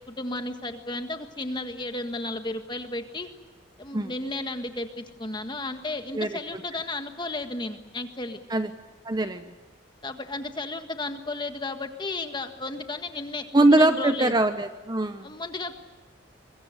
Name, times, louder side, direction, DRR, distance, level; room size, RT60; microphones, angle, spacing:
voice 1, 0.1-3.3 3.8-8.4 10.0-13.4 13.7-14.4 15.2-15.7, left 2 dB, 20° left, 6 dB, 1.7 m, -33 dB
voice 2, 6.1-6.6 8.5-8.7 9.0-9.5 13.5-15.3, right 2 dB, 20° right, 9 dB, 0.9 m, -22 dB
24.0 x 22.0 x 8.1 m, 1.2 s
head